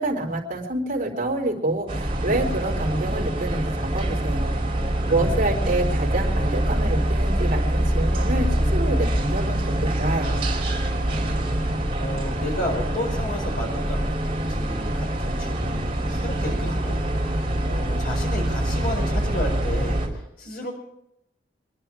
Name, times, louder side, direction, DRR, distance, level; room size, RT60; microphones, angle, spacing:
voice 1, 0.0-4.5 5.1-10.5, right 2 dB, 45° right, 0 dB, 4.2 m, -27 dB
sound 1, 1.9-20.1, right 1 dB, 30° right, 5.0 m, -24 dB
voice 2, 5.0-5.8 11.1-11.6 11.9-20.7, left 1 dB, 55° left, 1 dB, 5.1 m, -33 dB
26.0 x 11.0 x 4.9 m, 0.80 s
head